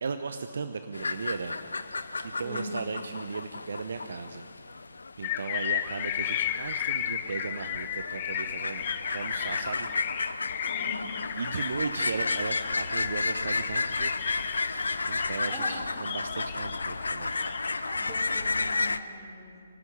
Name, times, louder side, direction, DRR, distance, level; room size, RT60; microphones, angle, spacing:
voice 1, 0.0-1.6 2.2-4.5 5.2-9.9 10.3-10.7 11.4-14.2 15.0-17.3, right 5 dB, 55° right, 9 dB, 0.9 m, -36 dB
sound 1, 0.9-19.0, left 3 dB, 65° left, 0.8 m, -33 dB
voice 2, 2.4-2.7 10.7-11.2 15.4-15.8 17.9-19.6, equal, 15° right, -3 dB, 4.3 m, -41 dB
sound 2, 5.2-15.8 16.0-17.7, left 11 dB, 30° left, 0.9 m, -35 dB
24.5 x 12.5 x 8.6 m, 2.3 s
figure-of-eight pair, 135°, 0 cm